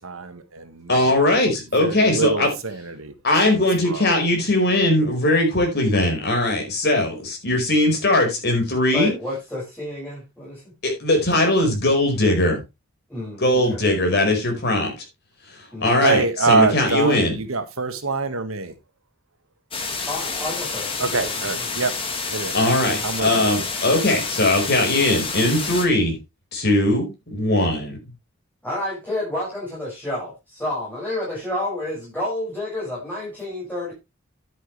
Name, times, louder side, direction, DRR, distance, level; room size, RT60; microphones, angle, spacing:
voice 1, 0.0-1.1 1.8-3.1 3.8-4.2 16.0-18.7 21.0-21.9 22.3-22.5 23.0-23.5, right 4 dB, 85° right, 1.6 m, -24 dB
voice 2, 0.9-2.5 3.2-9.1 10.8-12.6 13.4-14.9 15.8-17.4 22.5-26.2 26.5-28.0, left 1 dB, 50° left, 4.7 m, -20 dB
voice 3, 8.9-10.7 13.1-13.4 13.7-13.8 15.7-16.0 20.1-21.7 22.8-23.1 28.6-33.9, left 1 dB, 10° left, 5.9 m, -30 dB
sound 1, 19.7-25.9, left 4 dB, 25° left, 1.9 m, -29 dB
10.0 x 9.3 x 3.2 m
head